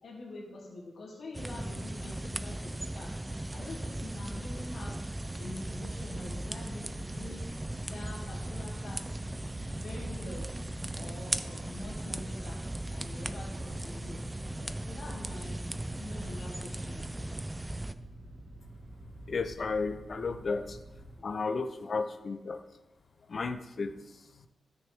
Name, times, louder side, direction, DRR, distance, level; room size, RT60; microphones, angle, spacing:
voice 1, 0.0-5.0 5.4-7.5 7.8-9.3 9.7-10.5 10.9-14.2 14.6-17.2 21.2-21.3, left 2 dB, 65° left, -4 dB, 2.3 m, -45 dB
sound 1, 1.3-17.9, right 1 dB, 10° right, 0.3 m, -38 dB
sound 2, 5.4-21.2, right 1 dB, 55° right, 3.1 m, -49 dB
voice 2, 19.3-20.8 21.2-22.6 23.3-24.5, left 4 dB, 40° left, 9 dB, 0.6 m, -34 dB
13.0 x 6.3 x 3.5 m, 1.0 s
wide cardioid pair, 155°, 0 cm